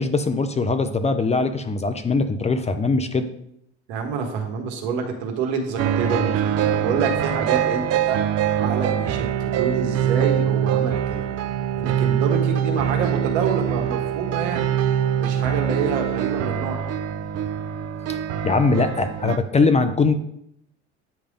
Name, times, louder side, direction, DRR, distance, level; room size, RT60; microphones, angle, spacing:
voice 1, 0.0-3.3 18.1-18.2 18.4-20.1, left 3 dB, 20° left, 9 dB, 0.6 m, -21 dB
voice 2, 3.9-8.2 8.6-11.3 11.8-14.7 15.2-16.9, right 5 dB, 70° right, 3 dB, 1.5 m, -27 dB
sound 1, 5.8-19.4, right 9 dB, 45° right, 0.7 m, -23 dB
9.2 x 3.4 x 5.1 m, 0.76 s
hypercardioid pair, 70°, 34 cm